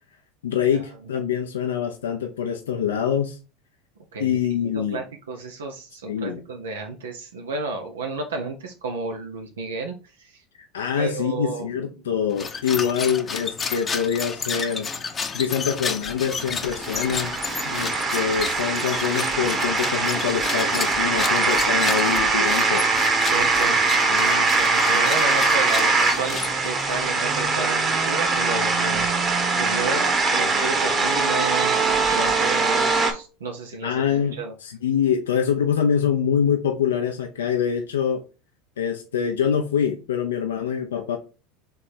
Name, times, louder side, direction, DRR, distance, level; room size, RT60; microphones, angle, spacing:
voice 1, 0.4-3.4 4.2-5.0 6.1-6.4 10.7-14.9 15.3-17.3 17.6-22.9 33.8-38.2 38.8-41.2, left 8 dB, 85° left, 0.6 m, -25 dB
voice 2, 4.7-10.4 11.0-11.7 12.7-12.9 23.2-31.8 32.1-34.0 34.3-34.5, right 3 dB, 85° right, 0.7 m, -32 dB
sound 1, 12.3-26.9, left 5 dB, 25° left, 0.7 m, -32 dB
sound 2, 16.1-33.1, right 3 dB, 30° right, 1.1 m, -22 dB
3.4 x 3.3 x 4.2 m
hypercardioid pair, 85°, 0 cm